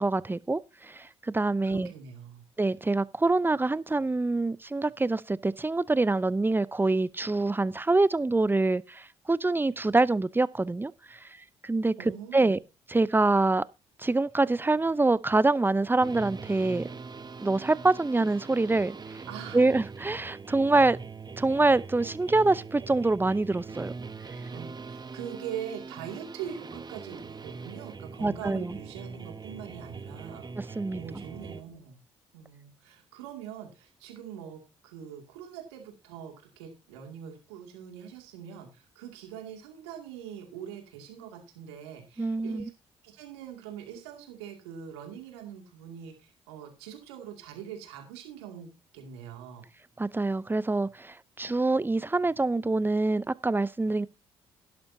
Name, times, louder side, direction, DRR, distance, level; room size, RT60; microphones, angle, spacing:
voice 1, 0.0-1.9 2.6-11.2 11.6-11.9 12.3-12.6 12.9-13.6 14.0-16.9 17.4-18.9 19.5-21.0 21.4-23.9 28.2-28.8 30.6-31.0 42.2-42.7 50.0-54.1, right 2 dB, 15° right, 0.6 m, -25 dB
voice 2, 1.6-2.4 12.0-12.6 19.3-19.6 24.4-32.0 32.3-42.7 43.0-49.7, right 9 dB, 85° right, 2.4 m, -43 dB
sound 1, 16.0-31.6, right 4 dB, 30° right, 1.1 m, -42 dB
12.5 x 11.5 x 2.7 m
hypercardioid pair, 50°, 13 cm